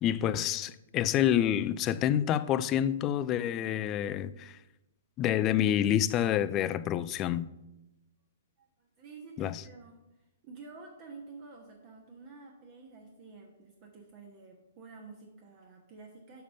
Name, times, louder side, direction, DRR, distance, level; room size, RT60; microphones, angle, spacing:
voice 1, 0.0-4.6 5.2-7.5 9.4-9.6, left 10 dB, 25° left, 0.4 m, -28 dB
voice 2, 8.6-10.0 10.4-16.4, right 4 dB, 35° right, 1.2 m, -50 dB
7.3 x 5.7 x 5.5 m
figure-of-eight pair, 115°, 0 cm